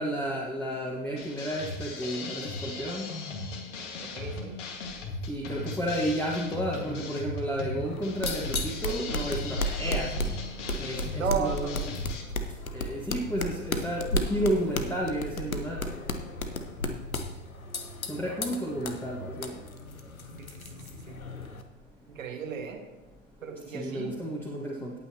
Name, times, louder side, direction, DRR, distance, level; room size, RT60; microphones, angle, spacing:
voice 1, 0.0-3.1 5.3-10.1 10.7-12.0 12.7-15.8 18.1-19.5 23.7-24.9, equal, 5° left, -3 dB, 1.6 m, -32 dB
sound 1, 1.1-12.2, left 3 dB, 60° left, 2.0 m, -38 dB
voice 2, 4.0-4.6 11.2-11.9 18.2-18.5 20.4-21.2 22.1-22.8 23.4-24.1, right 5 dB, 70° right, 4 dB, 1.9 m, -35 dB
sound 2, 4.7-21.4, left 1 dB, 35° right, 1.7 m, -51 dB
sound 3, 7.8-21.6, left 1 dB, 85° left, 1.1 m, -34 dB
17.5 x 8.8 x 2.9 m, 1.1 s
figure-of-eight pair, 90°, 41 cm